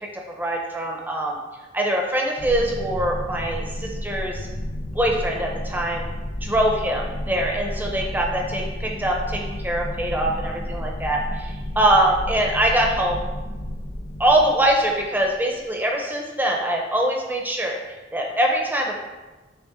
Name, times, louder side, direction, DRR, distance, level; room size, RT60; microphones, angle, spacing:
voice 1, 0.3-1.4 1.7-4.5 4.9-6.1 6.4-13.2 14.2-19.0, right 1 dB, 10° right, 0 dB, 0.9 m, -23 dB
sound 1, 2.4-15.7, left 1 dB, 70° left, 0.8 m, -32 dB
9.2 x 3.6 x 3.7 m, 1.2 s
head